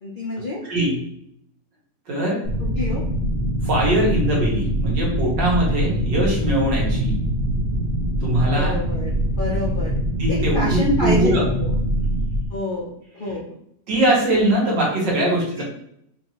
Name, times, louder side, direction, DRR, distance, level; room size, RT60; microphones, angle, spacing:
voice 1, 0.0-0.6 2.8-3.0 8.5-10.0 10.3-11.3 11.6-11.7 12.5-12.9 13.1-13.4 15.6-15.7, left 1 dB, 55° left, -5 dB, 0.5 m, -27 dB
voice 2, 0.6-1.0 2.1-2.4 3.6-7.2 8.2-8.7 10.2-11.5 12.0-12.3 13.2-13.4 13.9-15.6, right 1 dB, 85° right, -4 dB, 2.1 m, -21 dB
sound 1, 2.4-12.5, equal, 60° right, 0.5 m, -23 dB
4.9 x 2.7 x 3.0 m, 0.72 s
omnidirectional pair, 1.9 m